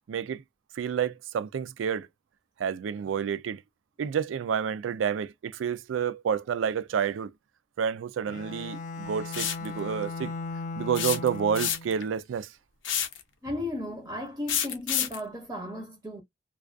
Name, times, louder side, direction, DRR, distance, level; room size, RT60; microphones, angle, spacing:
voice 1, 0.1-0.4 0.8-2.1 2.6-3.6 4.0-7.3 7.8-10.3 10.8-12.5, right 7 dB, 90° right, 0.3 m, -29 dB
Bowed string instrument, 8.2-12.1, left 3 dB, 40° left, 0.3 m, -37 dB
sound 1, 9.3-9.7 11.0-12.0 12.8-13.2 14.5-15.2, left 9 dB, 85° left, 0.6 m, -28 dB
voice 2, 13.4-16.2, left 1 dB, 15° right, 0.5 m, -35 dB
2.3 x 2.3 x 2.3 m
head